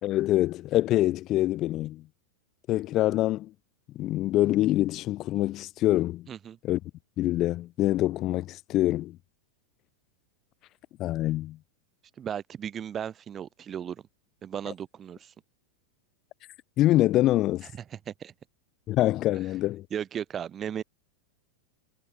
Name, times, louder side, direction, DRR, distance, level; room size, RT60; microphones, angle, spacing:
voice 1, 0.0-2.0 2.7-3.5 3.9-6.3 6.6-6.8 7.2-9.2 11.0-11.6 16.8-17.7 18.9-19.8, left 15 dB, 35° left, 1.5 m, -25 dB
voice 2, 12.2-14.0 14.4-15.3 17.6-18.3 19.9-20.8, right 9 dB, 25° right, 2.1 m, -36 dB
figure-of-eight pair, 90°, 0 cm